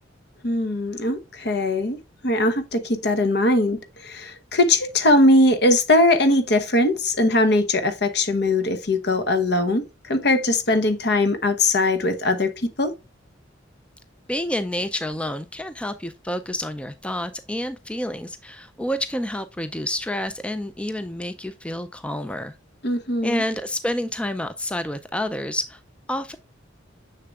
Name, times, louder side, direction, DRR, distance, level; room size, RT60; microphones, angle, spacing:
voice 1, 0.4-2.0 2.2-12.9 22.8-23.4, left 2 dB, 60° left, 1.0 m, -20 dB
voice 2, 14.3-22.5 23.2-25.8 26.1-26.4, left 1 dB, 5° left, 0.3 m, -29 dB
6.7 x 6.6 x 2.4 m
head